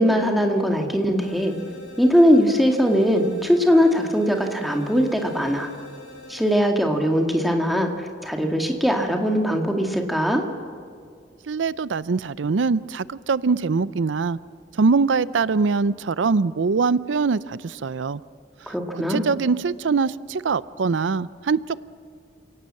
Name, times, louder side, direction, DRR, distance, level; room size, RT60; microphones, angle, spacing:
voice 1, 0.0-1.5 2.0-5.7 6.3-7.9 8.2-10.4 18.7-19.3, equal, ahead, 3 dB, 2.1 m, -20 dB
sound 1, 1.2-6.6, left 2 dB, 85° left, 4.6 m, -43 dB
voice 2, 11.5-14.4 14.7-18.2 18.6-21.9, right 4 dB, 90° right, 18 dB, 0.5 m, -23 dB
28.5 x 18.0 x 7.7 m, 2.2 s
head